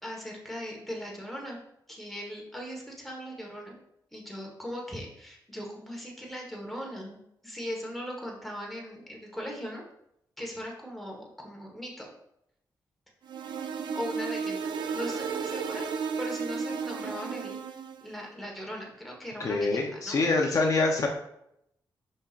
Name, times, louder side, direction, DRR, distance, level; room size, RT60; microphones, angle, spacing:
voice 1, 0.0-1.6 1.9-3.8 4.1-7.2 7.4-9.8 10.4-12.1 13.9-15.8 16.2-17.6 18.0-20.2, equal, ahead, -2 dB, 1.4 m, -39 dB
sound 1, 13.3-18.0, right 6 dB, 75° right, 0.5 m, -33 dB
voice 2, 19.4-21.1, left 3 dB, 45° left, 1 dB, 0.7 m, -25 dB
10.5 x 4.3 x 2.5 m, 0.78 s
wide cardioid pair, 170°, 8 cm